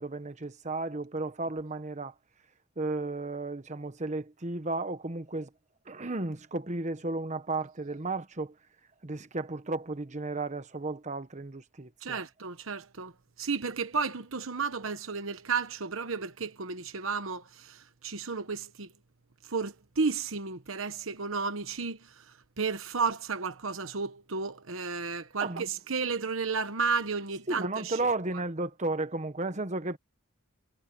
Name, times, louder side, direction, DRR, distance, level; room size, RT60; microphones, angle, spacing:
voice 1, 0.0-2.1 2.8-5.5 5.9-8.5 9.0-12.2 25.4-25.7 27.5-30.0, right 2 dB, 35° right, 1.1 m, -34 dB
voice 2, 12.0-13.1 13.4-18.9 19.5-22.0 22.6-28.0, right 4 dB, 70° right, 1.1 m, -32 dB
head